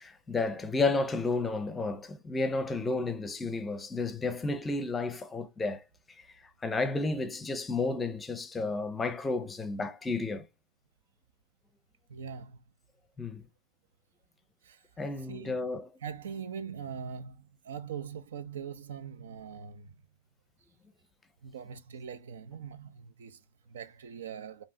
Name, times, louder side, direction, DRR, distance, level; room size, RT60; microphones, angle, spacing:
voice 1, 0.0-5.8 6.2-6.3 6.6-10.5 13.2-13.4 15.0-15.9, left 3 dB, 10° left, 0.6 m, -32 dB
voice 2, 12.1-12.6 14.6-14.8 15.3-15.6 16.0-19.9 21.4-24.6, right 7 dB, 80° right, 0.8 m, -42 dB
5.4 x 3.1 x 2.8 m
hypercardioid pair, 140°, 0 cm